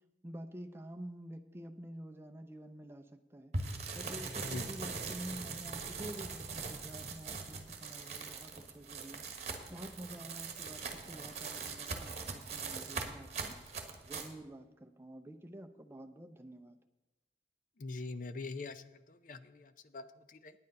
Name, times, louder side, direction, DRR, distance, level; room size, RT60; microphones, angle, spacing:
voice 1, 0.2-3.5 3.9-9.3 9.7-13.6 14.1-16.8, right 1 dB, 15° right, 4 dB, 0.6 m, -48 dB
sound 1, 3.5-14.3, right 4 dB, 40° right, 1.3 m, -41 dB
voice 2, 17.8-20.5, left 3 dB, 45° left, 12 dB, 0.6 m, -44 dB
9.7 x 9.1 x 5.3 m, 1.1 s
head